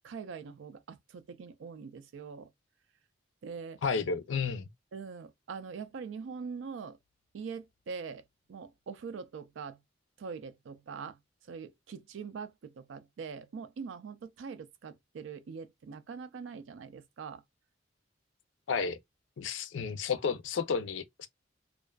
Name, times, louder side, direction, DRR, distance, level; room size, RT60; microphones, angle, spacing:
voice 1, 0.0-2.5 3.4-3.8 4.9-7.0 7.3-9.8 10.2-17.4, right 5 dB, 70° right, 0.4 m, -43 dB
voice 2, 3.8-4.7 18.7-19.0 19.4-21.3, left 5 dB, 70° left, 0.4 m, -32 dB
2.4 x 2.3 x 2.2 m
head